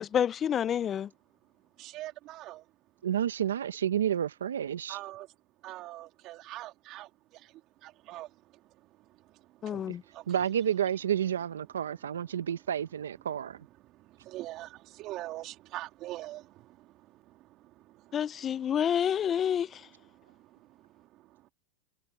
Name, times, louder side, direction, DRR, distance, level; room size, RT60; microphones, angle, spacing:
voice 1, 0.0-1.1 9.6-10.0 18.1-19.9, left 9 dB, 30° left, 0.5 m, -28 dB
voice 2, 1.8-2.6 4.9-5.3 5.6-7.1 8.1-8.3 9.7-9.8 14.3-14.7 15.0-16.4, right 16 dB, 45° right, 3.2 m, -41 dB
voice 3, 3.0-5.0 9.9-10.0 10.3-13.6, right 9 dB, 90° right, 0.8 m, -30 dB
hypercardioid pair, 105°, 0 cm